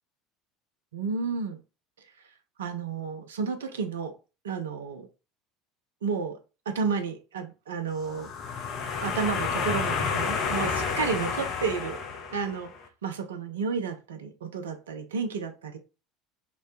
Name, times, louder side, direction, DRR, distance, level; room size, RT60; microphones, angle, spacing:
voice 1, 0.9-1.6 2.6-4.1 4.4-5.1 6.0-6.4 6.7-8.3 9.0-12.0 12.3-12.7 13.0-15.8, right 5 dB, 70° right, 7 dB, 0.4 m, -31 dB
sound 1, 8.0-12.8, left 5 dB, 40° left, 0.6 m, -30 dB
3.1 x 2.0 x 2.6 m, 0.31 s
figure-of-eight pair, 70°, 0 cm